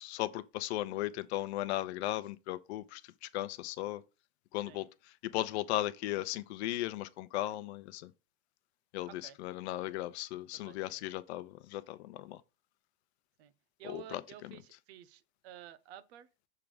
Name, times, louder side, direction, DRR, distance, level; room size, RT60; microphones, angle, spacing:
voice 1, 0.0-4.0 4.5-4.9 5.2-8.1 8.9-12.4 13.8-14.6, left 15 dB, 80° left, 0.8 m, -37 dB
voice 2, 9.1-9.4 9.8-9.9 10.5-11.0 13.4-13.5 13.8-16.3, right 11 dB, 75° right, 0.9 m, -52 dB
6.7 x 3.6 x 5.0 m
supercardioid pair, 115°, 32 cm